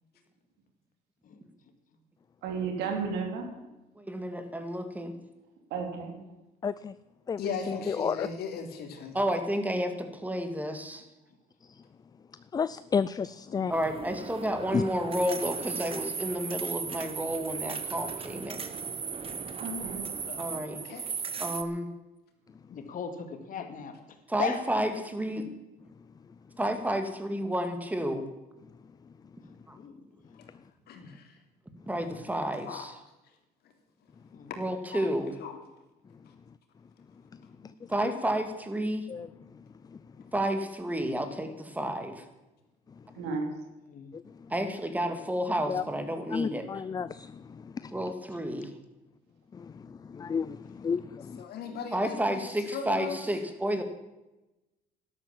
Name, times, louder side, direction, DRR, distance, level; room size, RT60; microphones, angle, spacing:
voice 1, 2.4-3.5 5.7-6.2 18.6-18.8 19.6-20.0 43.2-43.5, right 5 dB, 90° right, 3 dB, 3.8 m, -33 dB
voice 2, 4.0-5.1 9.1-11.0 13.7-18.6 20.4-20.8 21.4-21.9 24.3-25.4 26.6-28.3 29.7-29.8 31.9-33.0 34.6-35.4 37.9-39.1 40.3-42.2 44.5-46.8 47.9-48.7 51.9-53.8, equal, 10° right, 7 dB, 2.3 m, -31 dB
voice 3, 6.6-6.9 7.3-7.4 7.7-8.3 12.5-13.7 14.7-14.8 38.0-38.1 39.1-39.3 45.7-45.8 46.3-48.0 49.5-51.5, left 6 dB, 25° left, 16 dB, 0.4 m, -32 dB
voice 4, 7.4-9.2 20.3-21.1 30.9-31.4 32.1-32.2 32.7-32.9 34.5-34.6 34.9-35.1 35.4-35.6 51.4-53.2, left 6 dB, 70° left, 4 dB, 3.2 m, -38 dB
sound 1, 13.7-21.6, right 6 dB, 35° right, 1.3 m, -37 dB
voice 5, 22.7-23.9 24.4-24.6 29.8-30.0 34.3-34.5 37.6-37.7 43.9-44.1 51.6-51.8, left 6 dB, 55° left, 7 dB, 2.3 m, -37 dB
12.0 x 12.0 x 7.4 m, 1.0 s
cardioid pair, 110°, 17 cm